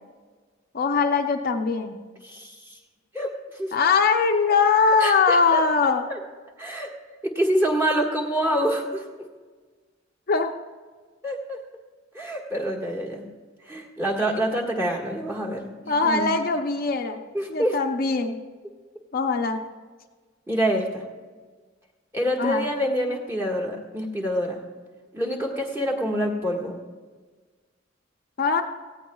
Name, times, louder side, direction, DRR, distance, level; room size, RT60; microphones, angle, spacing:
voice 1, 0.7-2.0 3.7-6.1 10.3-10.5 15.9-17.2 17.5-18.4 19.1-19.6 22.4-22.7 28.4-28.6, left 4 dB, 50° left, 4 dB, 0.6 m, -21 dB
voice 2, 2.2-2.5 3.1-3.7 5.0-6.2 6.6-6.9 7.2-9.0 11.2-11.6 12.1-13.2 13.7-16.3 17.3-17.8 20.5-21.0 22.1-24.6 25.1-26.8, equal, 15° right, -2 dB, 1.6 m, -26 dB
18.0 x 15.5 x 2.3 m, 1.4 s
head